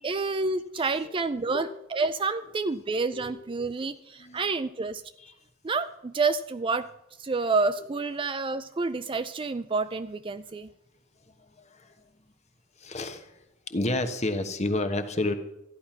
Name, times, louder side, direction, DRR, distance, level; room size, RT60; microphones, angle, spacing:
voice 1, 0.0-5.0 5.6-6.9 7.2-10.7, right 3 dB, 25° right, 12 dB, 0.4 m, -29 dB
voice 2, 3.1-3.5 4.1-4.5 5.2-5.3 7.8-7.9 11.2-12.1 12.8-15.3, left 2 dB, 30° left, 8 dB, 1.2 m, -32 dB
13.5 x 10.5 x 5.8 m, 0.87 s
head